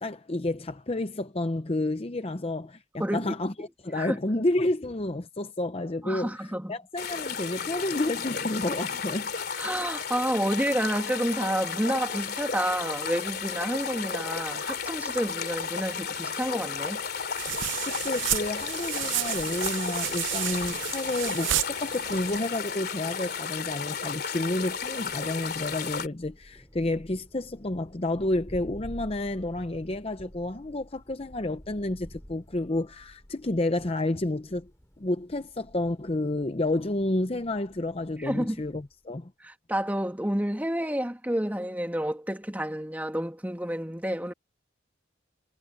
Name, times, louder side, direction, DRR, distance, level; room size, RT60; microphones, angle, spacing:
voice 1, 0.0-9.3 17.9-34.7 35.0-39.3, left 2 dB, 30° left, 0.7 m, -30 dB
voice 2, 3.0-3.3 4.0-4.2 6.0-6.7 9.6-17.0 38.2-38.6 39.4-44.3, equal, 10° right, 2.4 m, -29 dB
sound 1, 7.0-26.1, left 6 dB, 55° left, 3.1 m, -33 dB
sound 2, 17.4-22.4, right 12 dB, 80° right, 0.8 m, -32 dB
Thunder, 24.7-39.0, equal, 15° left, 6.3 m, -51 dB
head